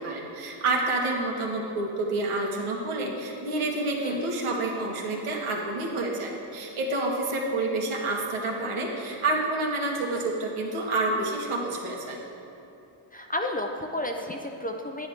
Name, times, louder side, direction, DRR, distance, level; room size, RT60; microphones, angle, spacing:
voice 1, 0.0-12.2, right 2 dB, 75° right, -2 dB, 1.9 m, -28 dB
voice 2, 13.1-15.1, left 1 dB, 20° left, 2 dB, 0.5 m, -32 dB
10.0 x 9.8 x 3.6 m, 2.9 s
cardioid pair, 120°, 50 cm